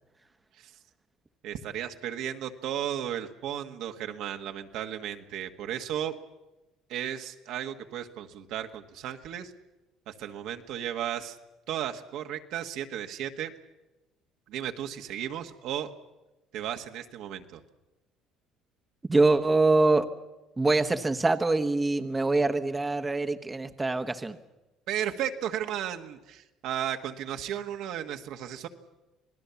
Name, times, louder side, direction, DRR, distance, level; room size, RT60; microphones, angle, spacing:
voice 1, 1.4-6.1 6.9-9.5 10.1-11.4 11.7-13.5 14.5-15.9 16.5-17.6 24.9-28.7, right 10 dB, 70° right, 5 dB, 1.6 m, -34 dB
voice 2, 19.1-20.1 20.6-24.4, right 2 dB, 15° right, 7 dB, 1.1 m, -24 dB
27.0 x 18.5 x 7.1 m, 1.0 s
supercardioid pair, 90°, 0 cm